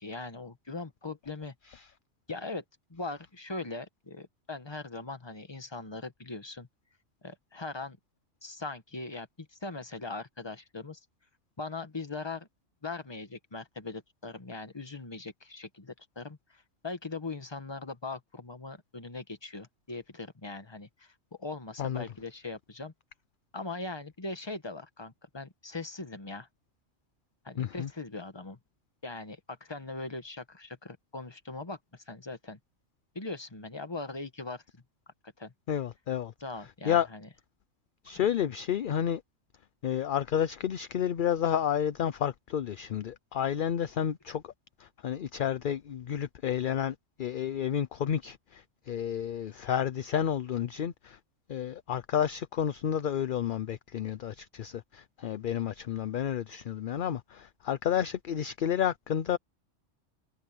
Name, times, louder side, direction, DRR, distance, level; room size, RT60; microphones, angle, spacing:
voice 1, 0.0-1.5 2.3-2.6 2.9-6.7 7.2-8.0 8.4-11.0 11.6-12.5 12.8-22.9 23.5-26.5 27.4-28.6 29.0-32.6 33.1-34.8 35.4-35.5 36.4-37.3, left 3 dB, 20° left, 1.3 m, -40 dB
voice 2, 27.6-27.9 35.7-36.3 36.8-37.1 38.0-39.2 39.8-44.5 44.8-51.2 51.5-59.4, left 9 dB, 55° left, 0.7 m, -31 dB
omnidirectional pair, 1.3 m